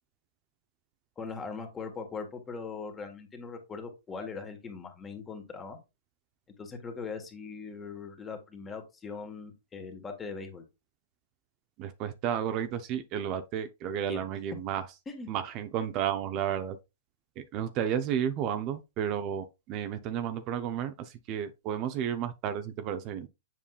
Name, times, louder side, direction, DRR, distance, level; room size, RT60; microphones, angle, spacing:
voice 1, 1.2-5.8 6.6-10.6 14.1-14.2 15.1-15.3, left 4 dB, 20° left, 1.7 m, -40 dB
voice 2, 11.8-14.8 15.3-16.8 17.4-23.3, right 9 dB, 40° right, 0.7 m, -32 dB
7.4 x 5.3 x 2.4 m
hypercardioid pair, 125°, 0 cm